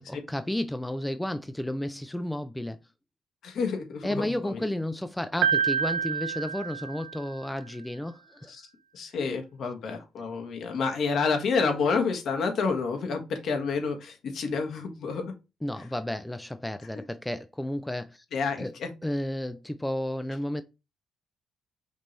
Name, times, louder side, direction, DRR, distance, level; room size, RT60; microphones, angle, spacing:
voice 1, 0.0-2.8 4.0-8.5 15.6-18.2 18.6-18.7 19.0-20.6, left 1 dB, 5° left, 0.4 m, -32 dB
voice 2, 3.4-4.6 8.5-8.7 8.9-15.3 18.3-18.9, left 4 dB, 65° left, 1.3 m, -29 dB
Piano, 5.4-7.5, right 7 dB, 85° right, 0.5 m, -28 dB
5.2 x 2.9 x 3.2 m
cardioid pair, 90°, 0 cm